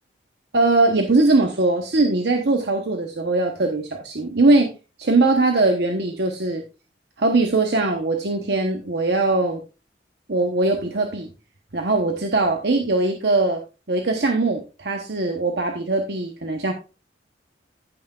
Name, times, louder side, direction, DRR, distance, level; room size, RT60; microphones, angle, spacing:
voice 1, 0.5-4.7 5.0-6.6 7.2-9.6 10.3-11.3 11.7-13.6 13.9-16.7, right 2 dB, 60° right, 3 dB, 1.0 m, -21 dB
15.5 x 5.9 x 2.4 m, 0.30 s
head